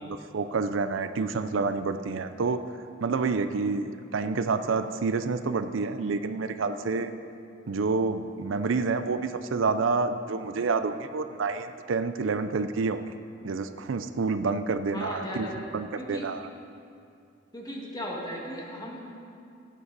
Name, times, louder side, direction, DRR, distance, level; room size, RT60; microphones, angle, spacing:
voice 1, 0.0-2.6 3.0-7.1 7.7-13.1 13.4-15.5 15.7-16.4, right 4 dB, 80° right, 10 dB, 0.5 m, -28 dB
voice 2, 14.9-15.6 16.0-16.3 17.5-19.2, equal, 20° left, -2 dB, 1.7 m, -37 dB
16.0 x 8.6 x 4.0 m, 2.5 s
head